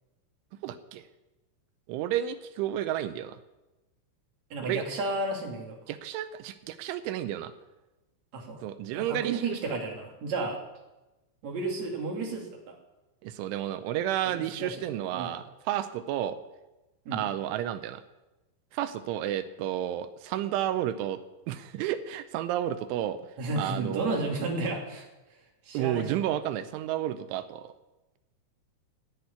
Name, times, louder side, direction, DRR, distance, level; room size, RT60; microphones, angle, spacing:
voice 1, 0.6-1.0 1.9-3.4 4.7-4.8 5.9-7.5 8.6-9.6 13.2-16.4 17.1-18.0 18.7-21.2 21.5-23.2 23.6-24.2 25.7-27.7, right 12 dB, 80° right, 11 dB, 3.0 m, -31 dB
voice 2, 4.5-5.8 8.3-8.6 8.9-10.6 11.4-12.7 14.2-14.8 15.1-15.3 17.0-17.2 23.4-25.1 25.7-26.2, right 3 dB, 40° right, 0 dB, 3.1 m, -32 dB
16.0 x 8.3 x 9.6 m, 1.0 s
omnidirectional pair, 5.8 m